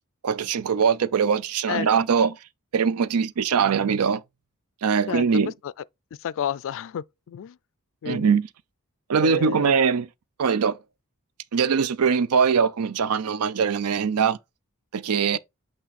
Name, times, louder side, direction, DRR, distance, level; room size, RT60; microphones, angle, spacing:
voice 1, 0.2-2.4 2.7-4.2 4.8-5.5 8.1-8.5 9.1-10.1 10.4-10.8 11.5-14.4 14.9-15.4, right 6 dB, 90° right, 0.5 m, -22 dB
voice 2, 5.1-5.7 6.2-7.6 8.0-8.3 9.2-9.7, left 8 dB, 60° left, 0.3 m, -31 dB
8.3 x 3.1 x 4.1 m
head